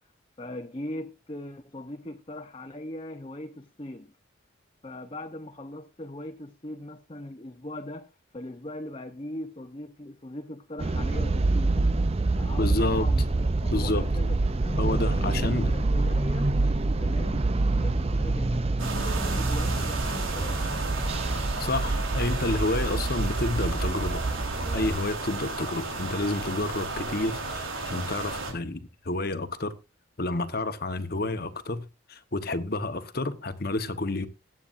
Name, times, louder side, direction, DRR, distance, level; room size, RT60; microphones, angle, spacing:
voice 1, 0.4-4.1 4.8-11.9 12.4-16.5 17.0-20.7, left 1 dB, 25° left, 0.7 m, -40 dB
sound 1, 10.8-25.0, right 2 dB, 30° right, 0.5 m, -26 dB
voice 2, 12.6-13.1 13.7-14.1 14.8-15.7 21.6-24.2 24.7-29.7 30.2-34.3, left 2 dB, 50° left, 1.0 m, -29 dB
sound 2, 18.8-28.5, right 3 dB, 85° right, 3.9 m, -34 dB
21.0 x 8.5 x 2.5 m
head